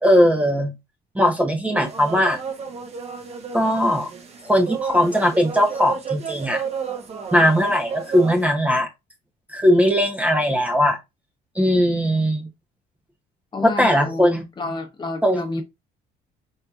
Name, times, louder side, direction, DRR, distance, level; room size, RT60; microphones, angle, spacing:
voice 1, 0.0-0.7 1.2-2.4 3.5-4.1 4.4-6.6 7.3-8.9 9.5-11.0 11.6-12.5 13.8-14.4 15.2-15.6, equal, 10° right, 0.6 m, -19 dB
sound 1, 1.8-8.5, right 6 dB, 40° right, 0.8 m, -32 dB
voice 2, 13.5-15.6, left 3 dB, 25° left, 0.9 m, -30 dB
4.6 x 2.7 x 2.3 m
cardioid pair, 110°, 17 cm